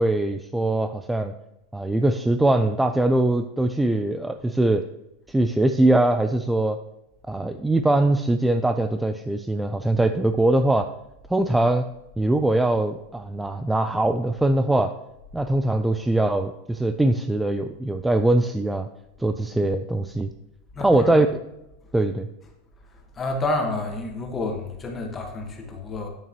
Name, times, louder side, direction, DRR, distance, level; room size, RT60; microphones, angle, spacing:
voice 1, 0.0-1.3 1.7-4.8 5.3-6.8 7.3-10.9 11.3-11.8 12.2-14.9 15.3-18.9 19.2-20.3 20.8-21.3 21.9-22.3, right 2 dB, 5° right, 8 dB, 0.3 m, -22 dB
voice 2, 20.7-21.2 22.9-26.1, left 2 dB, 20° left, 2 dB, 1.4 m, -29 dB
8.9 x 6.7 x 3.0 m, 0.91 s
supercardioid pair, 135°, 0 cm